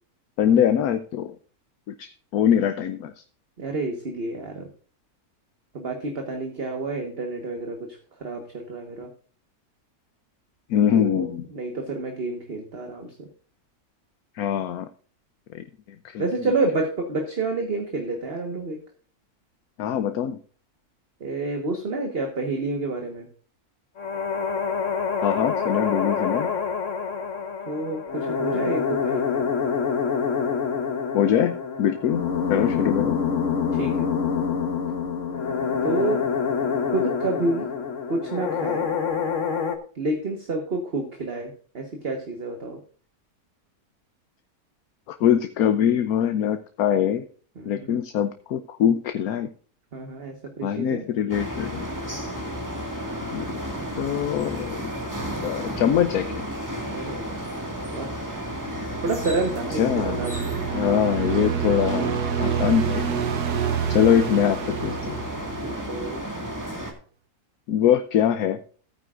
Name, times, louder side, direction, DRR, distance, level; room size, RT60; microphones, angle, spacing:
voice 1, 0.4-1.4 1.9-3.2 10.7-11.4 14.4-14.9 15.5-15.6 16.0-16.2 19.8-20.4 25.2-26.5 31.1-33.2 45.1-47.3 47.7-49.5 50.6-51.9 53.2-53.6 54.0-54.9 55.4-56.5 59.8-60.2 60.7-63.2 63.9-65.2 67.7-68.6, left 9 dB, 75° left, 9 dB, 1.2 m, -23 dB
voice 2, 3.6-4.7 5.7-9.1 10.9-13.3 16.2-18.8 21.2-23.3 27.7-29.5 33.7-34.1 35.8-36.2 36.9-37.7 38.1-38.9 39.9-42.8 47.5-48.0 49.9-51.1 56.9-57.4 57.9-58.1 59.0-60.6 65.6-66.2, right 3 dB, 40° right, 3 dB, 1.6 m, -29 dB
sound 1, 24.0-39.8, left 6 dB, 55° left, 1.5 m, -26 dB
sound 2, 51.3-66.9, equal, 10° right, 1.8 m, -32 dB
sound 3, 58.6-66.0, right 8 dB, 90° right, 1.4 m, -28 dB
15.5 x 9.3 x 2.5 m, 0.42 s
omnidirectional pair, 1.6 m